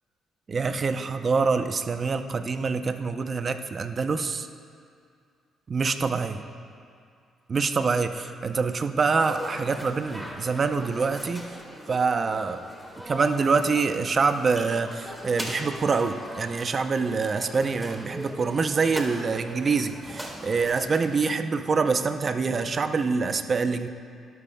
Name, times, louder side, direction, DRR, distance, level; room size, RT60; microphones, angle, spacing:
voice 1, 0.5-4.5 5.7-6.4 7.5-11.5 11.9-12.6 13.1-23.9, right 4 dB, 40° right, 9 dB, 0.6 m, -25 dB
sound 1, 9.2-21.2, equal, 5° right, 1.7 m, -40 dB
17.0 x 12.5 x 2.3 m, 2.3 s
cardioid pair, 90°, 0 cm